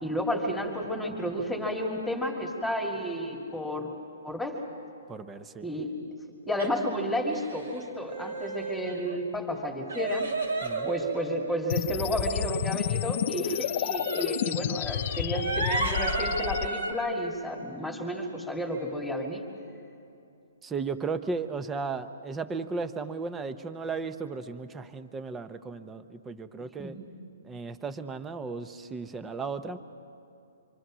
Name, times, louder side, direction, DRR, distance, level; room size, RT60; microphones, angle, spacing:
voice 1, 0.0-3.9 4.2-4.6 5.6-5.9 6.5-10.3 10.8-19.4 26.8-26.9, equal, 5° left, 0 dB, 2.4 m, -31 dB
voice 2, 5.1-5.7 10.6-10.9 20.6-27.0 27.4-29.8, right 4 dB, 15° right, 10 dB, 0.9 m, -35 dB
sound 1, 6.6-6.7 7.3-7.8 8.1-9.2 9.9-11.6 13.5-14.4 14.9-16.9, right 3 dB, 80° right, 3.7 m, -33 dB
sound 2, 11.7-16.7, left 11 dB, 50° left, 0.5 m, -30 dB
26.0 x 25.0 x 6.3 m, 2.6 s
hypercardioid pair, 145°, 0 cm